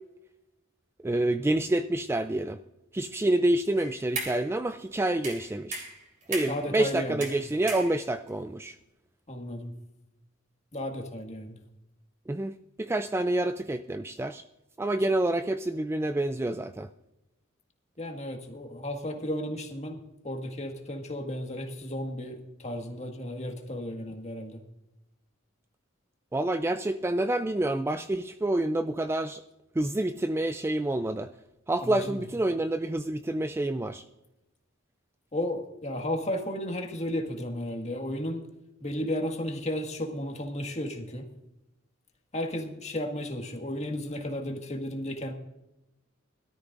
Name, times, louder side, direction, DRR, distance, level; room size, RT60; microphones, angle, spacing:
voice 1, 1.0-2.6 2.9-5.9 6.3-8.7 12.3-14.4 14.8-16.9 26.3-29.4 29.8-31.3 31.7-34.0, right 1 dB, 10° right, 10 dB, 0.3 m, -28 dB
sound 1, 3.8-4.5 5.2-6.7 7.2-8.3, right 3 dB, 40° right, 3.7 m, -37 dB
voice 2, 6.5-7.3 9.3-9.7 10.7-11.6 18.0-24.6 31.8-32.2 35.3-38.5 38.8-41.2 42.3-45.3, left 1 dB, 35° left, 3 dB, 1.7 m, -34 dB
22.0 x 13.0 x 2.5 m, 0.92 s
head